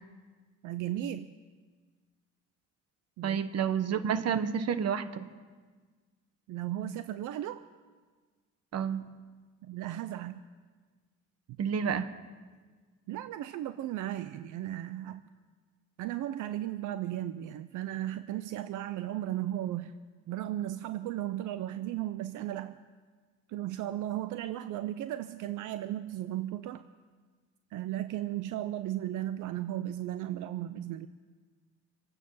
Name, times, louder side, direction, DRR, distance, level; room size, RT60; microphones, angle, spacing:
voice 1, 0.6-1.3 3.2-3.4 4.3-4.4 6.5-7.6 9.6-10.4 13.1-15.2 16.0-20.0 20.3-22.8 23.5-26.8 27.7-31.1, right 13 dB, 85° right, 12 dB, 0.6 m, -35 dB
voice 2, 3.2-5.3 8.7-9.2 11.6-12.1, right 7 dB, 55° right, 12 dB, 1.1 m, -30 dB
25.5 x 9.2 x 5.6 m, 1.4 s
cardioid pair, 90°, 30 cm